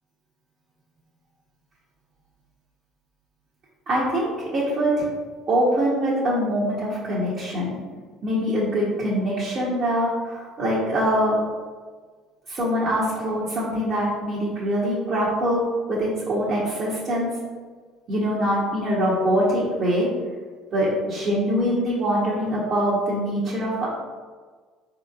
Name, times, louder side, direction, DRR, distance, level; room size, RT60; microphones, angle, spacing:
voice 1, 3.9-5.1 5.5-7.8 8.2-11.5 12.5-17.3 18.1-20.1 20.7-23.9, equal, 50° right, -8 dB, 1.0 m, -23 dB
4.2 x 2.9 x 2.5 m, 1.5 s
supercardioid pair, 75°, 0 cm